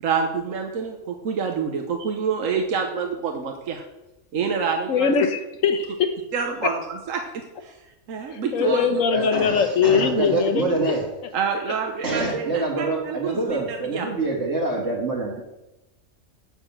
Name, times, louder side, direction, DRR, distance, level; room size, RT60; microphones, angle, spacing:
voice 1, 0.0-3.8 4.3-5.1 6.3-6.8 7.1-7.2 7.6-7.8 8.1-8.9 10.2-10.3 11.3-14.0, right 6 dB, 90° right, 3 dB, 1.3 m, -27 dB
voice 2, 4.9-6.2 6.6-6.7 8.3-10.9 11.7-11.8, left 6 dB, 80° left, 8 dB, 1.4 m, -22 dB
voice 3, 9.1-11.0 12.0-15.4, right 3 dB, 60° right, -4 dB, 2.0 m, -26 dB
7.5 x 6.9 x 7.2 m, 0.97 s
omnidirectional pair, 1.3 m